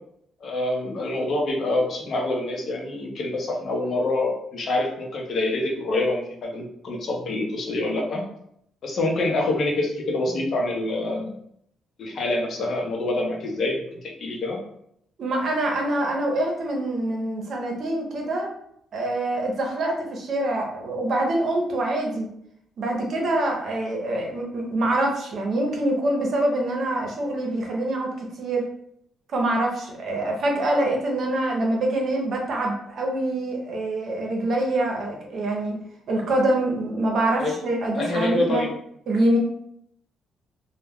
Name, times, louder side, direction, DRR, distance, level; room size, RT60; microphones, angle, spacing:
voice 1, 0.4-8.3 8.8-11.3 12.0-14.6 37.4-37.5 38.0-38.8, left 2 dB, 60° left, 0 dB, 0.7 m, -26 dB
voice 2, 15.2-18.5 18.9-22.3 22.8-28.7 29.3-35.8 36.1-38.7 39.1-39.4, right 1 dB, 60° right, 0 dB, 0.7 m, -25 dB
2.2 x 2.1 x 3.5 m, 0.72 s
cardioid pair, 90°, 0 cm